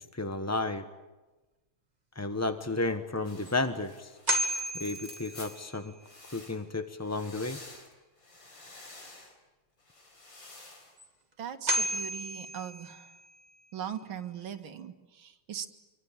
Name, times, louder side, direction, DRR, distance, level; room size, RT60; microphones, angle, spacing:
voice 1, 0.1-0.8 2.1-4.2 4.7-5.9 6.3-7.6, left 2 dB, 15° left, 9 dB, 0.5 m, -32 dB
sound 1, 2.8-2.9 3.5-3.6 4.3-5.9 11.0-11.1 11.7-13.3, equal, 20° right, 2.4 m, -32 dB
sound 2, 3.2-5.6 6.0-6.6 7.0-9.3 9.8-10.9, left 2 dB, 60° left, 5.3 m, -50 dB
voice 2, 11.4-13.1 13.7-15.7, right 9 dB, 70° right, 5 dB, 2.5 m, -40 dB
25.5 x 24.5 x 8.9 m, 1.1 s
omnidirectional pair, 2.4 m